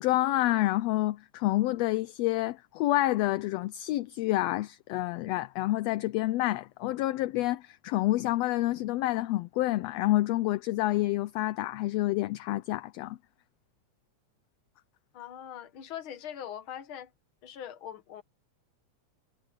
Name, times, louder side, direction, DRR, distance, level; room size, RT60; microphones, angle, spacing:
voice 1, 0.0-13.2, left 16 dB, 75° left, 1.6 m, -28 dB
voice 2, 15.1-17.1 17.4-18.2, left 10 dB, 50° left, 1.9 m, -41 dB
omnidirectional pair, 3.3 m